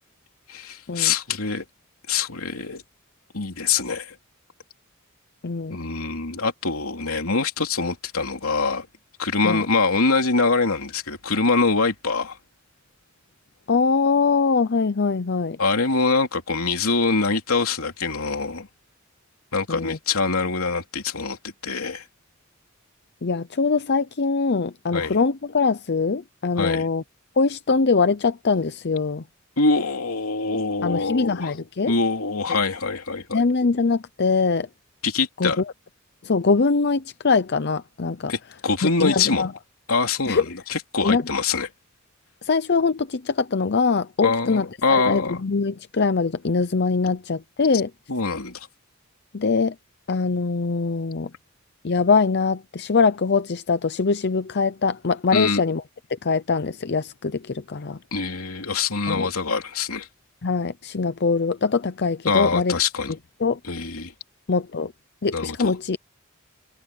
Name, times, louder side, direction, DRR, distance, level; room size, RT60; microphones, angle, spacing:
voice 1, 0.5-1.7 2.1-2.8 3.3-4.2 5.7-8.9 9.2-12.4 15.6-18.7 19.5-22.1 24.9-25.2 26.6-26.9 29.6-31.5 31.9-33.4 35.0-35.6 38.3-39.5 39.9-41.7 44.2-45.4 48.1-48.7 55.3-55.6 58.1-60.1 62.3-63.1 63.6-64.1 65.3-65.7, left 4 dB, 85° left, 3.1 m, -24 dB
voice 2, 5.4-5.8 9.4-9.6 13.7-15.6 19.7-20.0 23.2-27.0 27.4-29.2 30.8-31.9 33.3-34.7 35.4-35.5 36.2-38.3 38.8-39.5 40.3-40.5 41.0-41.2 42.4-47.9 49.3-49.7 50.1-51.3 51.8-55.8 56.2-58.0 59.1-59.3 60.4-62.7 63.4-63.6 64.5-64.9 65.2-66.0, left 4 dB, 50° left, 0.7 m, -22 dB
head